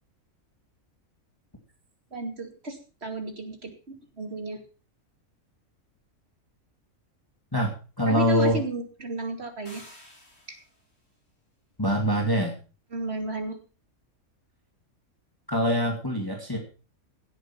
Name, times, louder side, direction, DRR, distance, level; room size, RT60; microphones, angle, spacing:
voice 1, 2.1-3.7 4.2-4.6 8.1-9.8 10.5-10.6 12.9-13.6, right 1 dB, 45° right, 5 dB, 2.8 m, -33 dB
voice 2, 7.5-8.6 11.8-12.6 15.5-16.6, equal, 15° left, 1 dB, 2.4 m, -24 dB
sound 1, 9.7-10.9, left 1 dB, 60° left, 5.9 m, -50 dB
17.0 x 8.2 x 5.8 m, 0.36 s
omnidirectional pair, 1.5 m